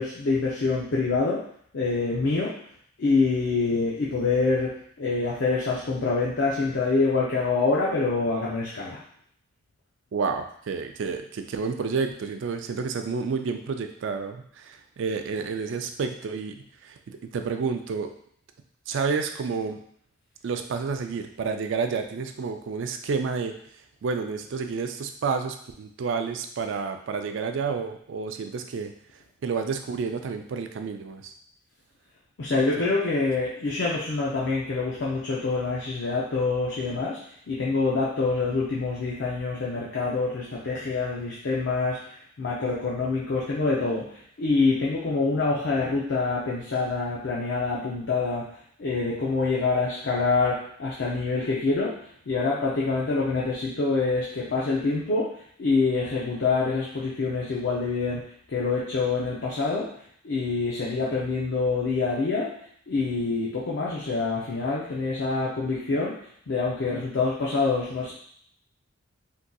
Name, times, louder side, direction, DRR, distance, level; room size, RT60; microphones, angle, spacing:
voice 1, 0.0-1.5 1.7-2.6 3.0-9.0 32.4-37.2 37.5-52.0 52.3-59.9 60.2-62.6 62.9-66.2 66.5-68.1, left 3 dB, 60° left, -5 dB, 0.5 m, -26 dB
voice 2, 10.1-18.1 18.9-19.8 20.4-23.5 24.0-28.9 29.4-31.3 32.5-32.9, right 5 dB, 60° right, 6 dB, 0.3 m, -30 dB
3.7 x 2.6 x 2.3 m, 0.63 s
head